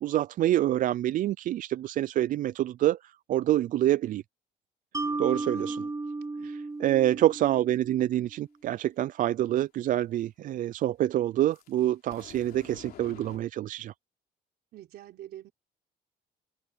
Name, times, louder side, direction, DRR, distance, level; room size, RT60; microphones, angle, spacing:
voice 1, 0.0-3.0 3.3-4.2 5.2-5.8 6.4-13.9, right 13 dB, 55° right, 0.4 m, -26 dB
Mallet percussion, 4.9-8.2, right 3 dB, 20° right, 3.6 m, -34 dB
voice 2, 5.5-5.9 6.4-6.5 14.7-15.5, right 13 dB, 70° right, 3.8 m, -47 dB
sound 1, 11.5-13.4, left 12 dB, 65° left, 3.3 m, -49 dB
cardioid pair, 110°, 17 cm